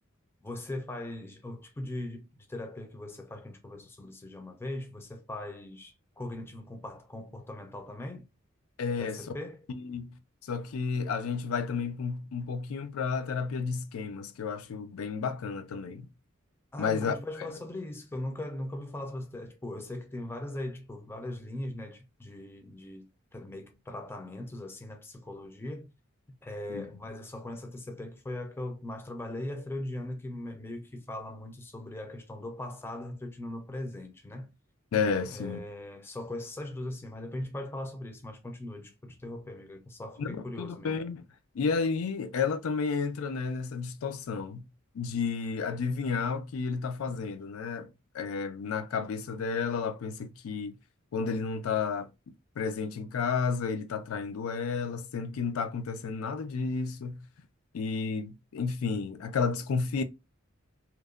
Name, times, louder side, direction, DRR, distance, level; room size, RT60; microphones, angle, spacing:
voice 1, 0.4-8.3 9.0-9.7 16.7-25.9 26.4-34.5 35.3-41.0, left 1 dB, 10° left, 0.3 m, -39 dB
voice 2, 8.8-9.2 9.7-16.1 16.8-17.1 26.7-26.8 34.9-35.6 40.2-41.2 41.5-44.6 44.9-47.9 48.1-50.8 51.1-52.1 52.6-57.2 57.7-60.0, left 5 dB, 85° left, 0.4 m, -32 dB
2.8 x 2.1 x 2.3 m
head